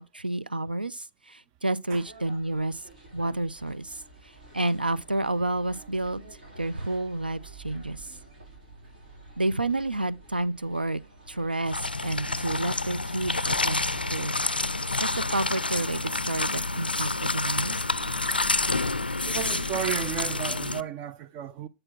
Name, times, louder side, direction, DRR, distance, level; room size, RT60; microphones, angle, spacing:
voice 1, 0.0-2.8 3.1-6.2 6.6-8.1 9.4-11.0 11.3-14.4 15.0-17.8, right 2 dB, 90° right, 0.4 m, -30 dB
sound 1, 2.0-20.3, right 3 dB, 70° right, 3.5 m, -50 dB
sound 2, 11.7-20.8, left 3 dB, 90° left, 0.3 m, -28 dB
voice 2, 19.2-21.7, right 9 dB, 30° right, 0.5 m, -33 dB
7.7 x 4.4 x 4.3 m
figure-of-eight pair, 115°, 5 cm